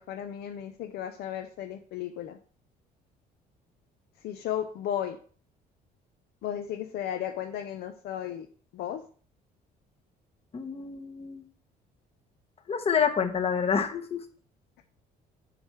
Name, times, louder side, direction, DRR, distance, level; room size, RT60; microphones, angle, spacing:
voice 1, 0.0-2.4 4.2-5.2 6.4-8.5 8.7-9.0, left 10 dB, 75° left, 7 dB, 0.6 m, -34 dB
voice 2, 10.5-11.4 12.7-14.2, left 6 dB, 35° left, 8 dB, 1.1 m, -28 dB
7.9 x 3.3 x 5.7 m, 0.43 s
cardioid pair, 110°, 17 cm